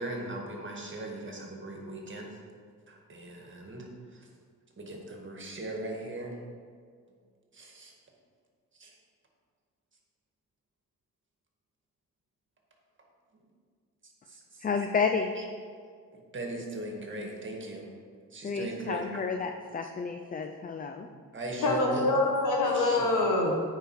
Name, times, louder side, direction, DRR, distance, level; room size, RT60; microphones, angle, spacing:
voice 1, 0.0-2.4 2.9-3.9 4.8-6.4 7.5-7.9 8.8-8.9 14.3-14.6 15.4-15.5 16.1-17.9 18.3-19.0 21.1-22.1 22.8-23.1, right 1 dB, 35° right, 0 dB, 1.8 m, -38 dB
voice 2, 14.6-15.3 18.4-21.1, left 5 dB, 25° left, 5 dB, 0.5 m, -31 dB
voice 3, 21.6-23.6, left 2 dB, 65° left, 0 dB, 1.7 m, -25 dB
9.0 x 4.8 x 4.8 m, 2.1 s
supercardioid pair, 65°, 33 cm